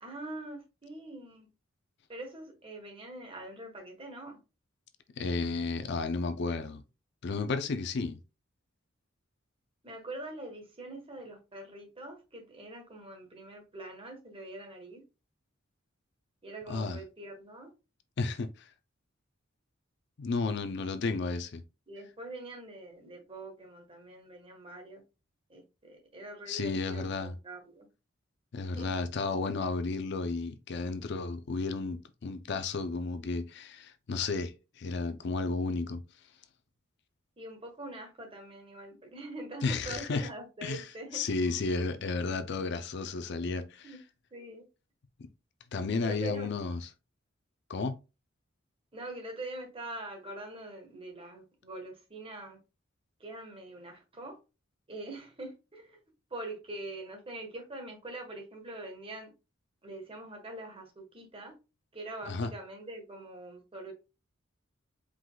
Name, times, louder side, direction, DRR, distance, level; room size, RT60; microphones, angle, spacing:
voice 1, 0.0-1.5 2.1-4.4 9.8-15.0 16.4-17.7 21.9-25.0 25.5-27.0 27.4-27.8 28.7-28.9 37.4-41.8 43.8-44.0 44.3-44.6 46.0-46.5 48.9-52.6 53.2-54.4 54.9-56.0 56.3-59.3 59.8-61.6 61.9-63.9, right 2 dB, 30° right, 1.2 m, -44 dB
voice 2, 5.2-6.8 7.2-8.2 16.7-17.0 18.2-18.7 20.2-21.6 26.5-27.4 28.5-36.0 39.6-40.3 40.6-44.0 45.7-46.9 47.7-48.0 62.3-62.5, left 3 dB, 60° left, 0.5 m, -33 dB
4.7 x 3.8 x 2.2 m
head